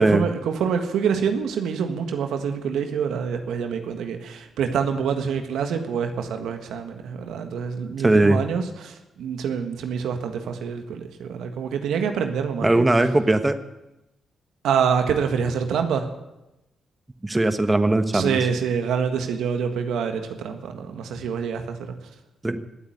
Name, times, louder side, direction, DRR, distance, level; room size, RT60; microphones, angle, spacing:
voice 1, 0.0-12.9 14.6-16.1 18.1-21.9, right 7 dB, 80° right, 6 dB, 1.6 m, -26 dB
voice 2, 8.0-8.4 12.6-13.6 17.2-18.4 22.4-22.6, right 2 dB, 20° right, 9 dB, 1.4 m, -19 dB
17.0 x 8.4 x 9.7 m, 0.95 s
supercardioid pair, 50°, 0 cm